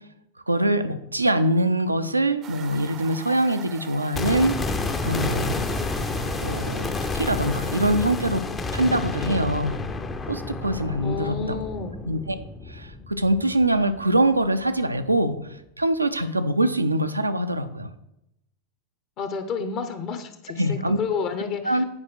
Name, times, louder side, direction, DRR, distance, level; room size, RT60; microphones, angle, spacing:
voice 1, 0.5-4.6 5.0-5.6 6.4-8.5 8.7-9.8 10.3-11.6 12.0-12.4 12.7-17.9 20.6-21.0 21.6-21.8, right 1 dB, 85° right, 9 dB, 0.6 m, -23 dB
sound 1, 2.4-7.9, right 8 dB, 30° right, 0.7 m, -43 dB
sound 2, 4.1-14.2 14.4-14.5, left 3 dB, 20° left, 0.7 m, -30 dB
voice 2, 11.0-11.9 19.2-21.8, left 5 dB, 40° left, 8 dB, 1.0 m, -30 dB
8.8 x 5.0 x 6.2 m, 0.83 s
figure-of-eight pair, 90°, 0 cm